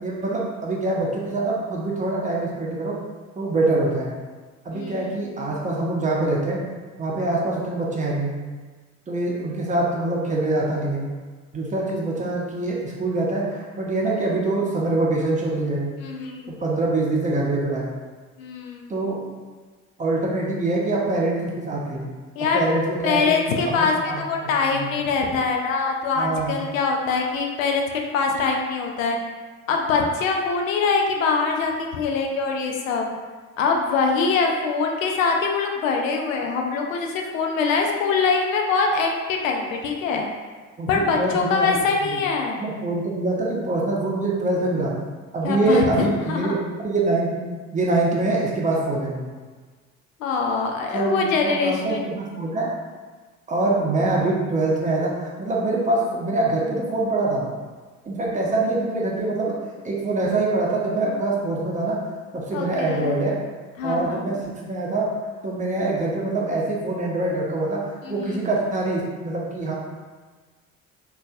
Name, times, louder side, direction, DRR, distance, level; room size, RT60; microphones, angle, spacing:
voice 1, 0.0-3.0 3.4-4.1 4.6-6.6 7.0-8.3 9.1-11.1 11.5-15.9 16.6-17.9 18.9-19.2 20.0-22.1 22.5-23.3 23.7-24.2 24.7-24.9 26.2-26.5 40.8-41.7 42.0-42.2 42.6-44.9 45.3-47.5 47.7-49.3 50.9-52.7 53.5-57.5 58.1-59.6 59.8-62.0 62.3-63.4 63.8-64.4 64.6-65.1 65.4-69.7, right 2 dB, 20° right, -3 dB, 0.6 m, -24 dB
voice 2, 4.7-5.1 16.0-16.5 18.4-18.9 22.4-22.6 23.0-29.2 29.7-33.1 33.6-40.3 40.9-42.6 45.4-46.5 50.2-52.0 62.5-63.2 63.8-64.3 68.0-68.4, left 4 dB, 70° left, 1 dB, 0.5 m, -23 dB
3.7 x 2.4 x 2.4 m, 1.4 s
figure-of-eight pair, 55°, 41 cm